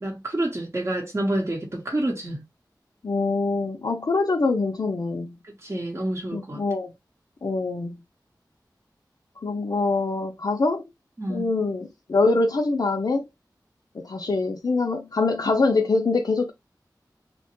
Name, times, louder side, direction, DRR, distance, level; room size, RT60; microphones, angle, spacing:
voice 1, 0.0-2.4 5.4-6.6 11.2-11.5, right 1 dB, 35° right, 0.8 m, -28 dB
voice 2, 3.0-5.4 6.3-6.9 7.4-8.0 9.4-10.8 11.3-13.2 13.9-16.5, left 3 dB, 60° left, 0.4 m, -24 dB
2.8 x 2.1 x 2.9 m
wide cardioid pair, 40°, 8 cm